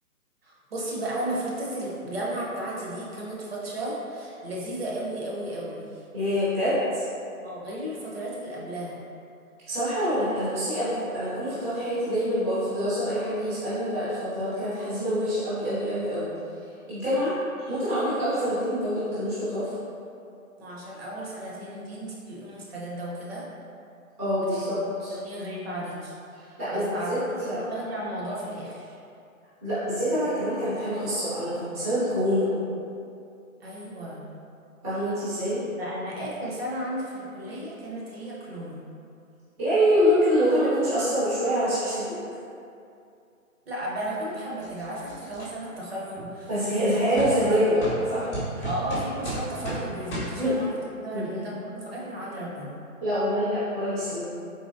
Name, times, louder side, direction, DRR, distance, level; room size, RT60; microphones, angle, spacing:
voice 1, 0.4-6.0 7.4-9.0 20.6-23.4 24.5-24.6 25.1-26.1 26.4-29.0 33.6-34.2 35.8-38.8 43.7-46.5 46.8-47.0 47.4-47.7 48.6-50.7 51.0-52.8, right 1 dB, 45° right, -5 dB, 0.8 m, -34 dB
voice 2, 6.1-7.1 9.7-16.3 16.9-17.3 17.6-19.7 24.2-24.7 25.0-25.1 26.6-27.6 29.6-32.5 34.8-35.6 39.6-42.2 46.5-47.8 48.1-48.3 48.6-48.7 50.4-50.5 51.1-51.3 53.0-54.2, equal, 10° right, -14 dB, 0.6 m, -25 dB
sound 1, 44.6-45.5 46.2-46.3 47.2-47.3 47.8-48.0 48.3-49.8 50.1-50.3, right 1 dB, 20° left, 0.8 m, -33 dB
3.9 x 2.9 x 2.5 m, 2.5 s
figure-of-eight pair, 135°, 42 cm